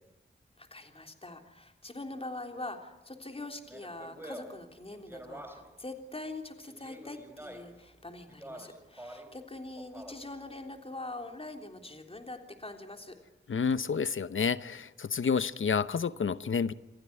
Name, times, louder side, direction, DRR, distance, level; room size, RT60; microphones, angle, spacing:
voice 1, 0.6-13.2, left 2 dB, 30° left, 3.5 m, -43 dB
Speech, 3.7-5.8 6.6-7.8 8.3-9.4 9.8-10.4, right 1 dB, 10° right, 4.1 m, -47 dB
voice 2, 13.5-16.7, left 6 dB, 85° left, 0.8 m, -29 dB
27.0 x 16.0 x 9.9 m
wide cardioid pair, 70°, 20 cm